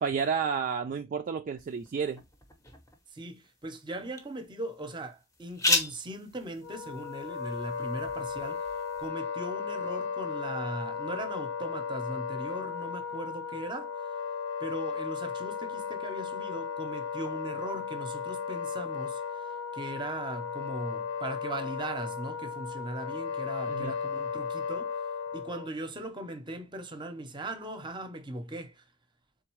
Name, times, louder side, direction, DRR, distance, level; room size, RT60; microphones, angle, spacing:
voice 1, 0.0-2.2 23.7-23.9, right 6 dB, 40° right, 0.3 m, -31 dB
sound 1, 1.6-9.1, left 2 dB, 15° left, 0.8 m, -36 dB
voice 2, 3.1-8.7 9.0-14.1 14.6-24.9 25.3-28.8, right 1 dB, 20° right, 0.7 m, -39 dB
Wind instrument woodwind instrument, 6.6-25.7, left 6 dB, 60° left, 0.5 m, -35 dB
3.8 x 3.5 x 3.0 m
head